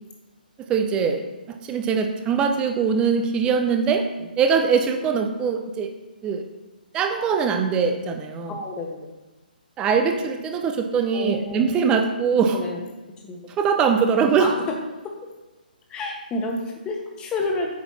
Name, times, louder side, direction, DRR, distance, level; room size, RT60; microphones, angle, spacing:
voice 1, 0.6-4.1 4.4-5.9 6.2-6.4 6.9-8.5 9.8-12.6 13.6-14.5, right 6 dB, 15° right, 6 dB, 0.7 m, -22 dB
voice 2, 8.5-9.1 11.1-11.6 12.5-12.8 13.2-13.4 14.4-14.6 15.0-15.1 15.9-17.7, left 2 dB, 15° left, 1 dB, 1.3 m, -29 dB
8.5 x 6.0 x 4.2 m, 1.1 s
figure-of-eight pair, 135°, 5 cm